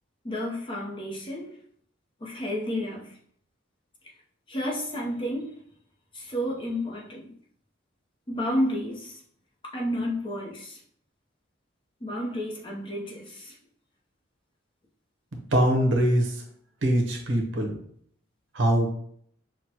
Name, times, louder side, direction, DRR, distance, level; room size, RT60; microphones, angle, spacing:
voice 1, 0.2-1.5 2.2-3.1 4.5-5.6 6.1-7.3 8.3-9.2 9.7-10.8 12.0-13.5, equal, 25° left, -1 dB, 0.7 m, -31 dB
voice 2, 15.5-16.4 16.8-17.8 18.5-18.9, right 1 dB, 75° right, 2 dB, 0.9 m, -22 dB
6.0 x 2.2 x 2.8 m, 0.63 s
head